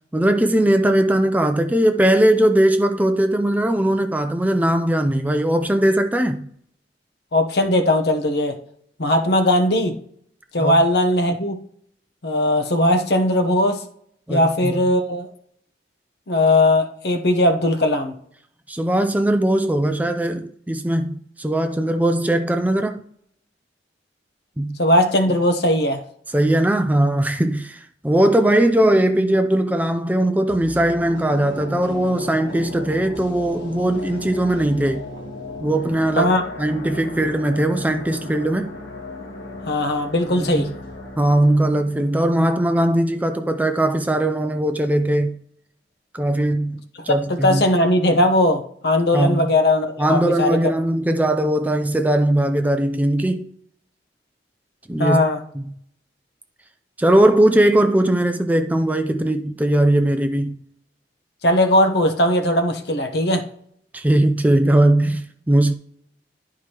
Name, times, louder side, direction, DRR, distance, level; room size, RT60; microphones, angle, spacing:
voice 1, 0.1-6.5 10.6-10.8 14.3-14.8 18.7-23.0 24.6-24.8 26.3-35.0 35.6-36.3 36.6-38.7 40.4-40.7 41.2-45.4 46.1-47.6 49.1-49.5 50.0-53.5 54.9-55.2 55.5-55.7 57.0-60.5 63.9-65.7, right 1 dB, 10° right, 0.4 m, -19 dB
voice 2, 7.3-8.6 9.0-10.0 10.5-11.6 12.2-13.8 14.3-15.3 16.3-18.1 24.8-26.0 36.2-36.4 39.7-40.7 47.3-50.6 55.0-55.4 61.4-63.4, left 1 dB, 60° left, 0.9 m, -18 dB
sound 1, 30.5-43.6 43.9-44.0, left 2 dB, 85° left, 1.6 m, -36 dB
11.0 x 4.7 x 3.0 m
head